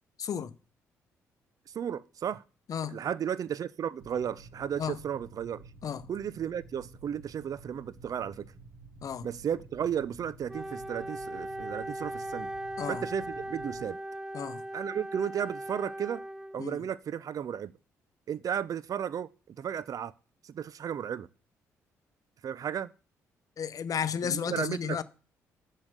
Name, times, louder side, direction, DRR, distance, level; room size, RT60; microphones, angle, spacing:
voice 1, 0.2-0.5 2.7-3.0 4.8-5.0 5.8-6.0 9.0-9.3 12.8-13.0 14.3-14.6 16.6-16.8 23.6-25.0, left 7 dB, 55° left, 0.7 m, -33 dB
voice 2, 1.7-2.4 2.9-5.7 6.1-8.5 9.2-12.5 12.9-14.0 14.7-16.2 16.5-17.7 18.3-20.1 20.4-21.3 22.4-22.9 24.2-25.0, right 8 dB, 55° right, 0.5 m, -34 dB
sound 1, 4.0-13.9, right 3 dB, 85° right, 2.6 m, -52 dB
Wind instrument woodwind instrument, 10.5-16.9, right 1 dB, 10° right, 0.8 m, -39 dB
7.2 x 6.5 x 6.7 m
hypercardioid pair, 50°, 7 cm